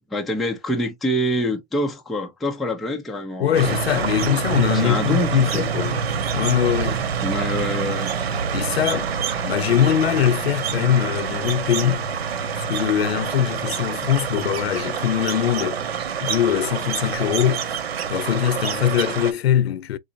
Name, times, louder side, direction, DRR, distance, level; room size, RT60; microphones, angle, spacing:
voice 1, 0.1-3.8 4.7-5.6 7.2-8.1, equal, ahead, 0.3 m, -26 dB
voice 2, 3.4-6.0 6.3-7.0 8.5-9.1 9.4-12.1 12.5-15.8 16.2-17.7 18.1-20.0, left 10 dB, 75° left, 0.6 m, -22 dB
sound 1, 3.5-19.3, right 6 dB, 80° right, 1.1 m, -26 dB
4.0 x 3.8 x 2.6 m
hypercardioid pair, 140°, 31 cm